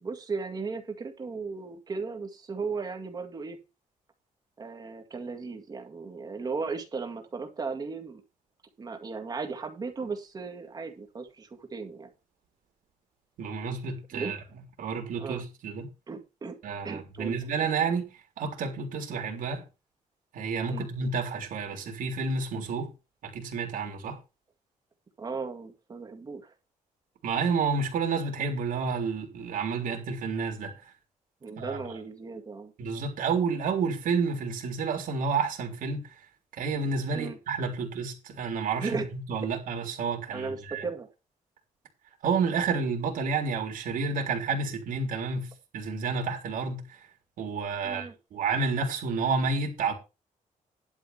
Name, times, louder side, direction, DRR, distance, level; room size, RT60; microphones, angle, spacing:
voice 1, 0.0-3.6 4.6-8.2 8.8-12.1 14.1-14.3 14.9-15.4 16.1-16.6 16.8-17.4 20.7-20.9 25.2-26.5 31.4-32.7 37.1-37.4 38.8-39.1 40.3-41.1 47.8-48.1, right 4 dB, 30° right, 2.0 m, -36 dB
voice 2, 13.4-14.4 14.8-15.9 16.6-18.1 18.4-19.6 20.3-22.9 23.2-24.2 27.2-30.7 31.6-31.8 32.8-36.1 36.6-40.8 42.2-46.8 47.4-49.9, right 5 dB, 90° right, 3.6 m, -30 dB
11.5 x 5.0 x 6.6 m
wide cardioid pair, 180°, 14 cm